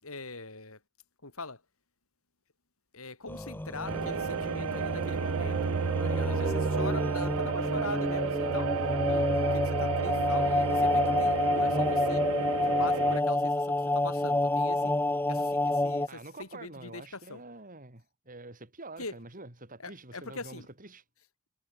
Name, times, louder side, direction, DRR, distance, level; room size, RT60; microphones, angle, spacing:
voice 1, 0.0-0.8 1.2-1.6 2.9-5.6 6.0-12.3 12.6-15.0 15.3-17.4 19.0-19.1 19.8-20.7, left 3 dB, 85° left, 6.8 m, -42 dB
sound 1, 3.3-16.1, left 2 dB, 10° left, 0.7 m, -29 dB
sound 2, 3.8-13.2, right 6 dB, 75° right, 0.5 m, -31 dB
voice 2, 16.1-21.0, right 2 dB, 40° right, 4.5 m, -47 dB
head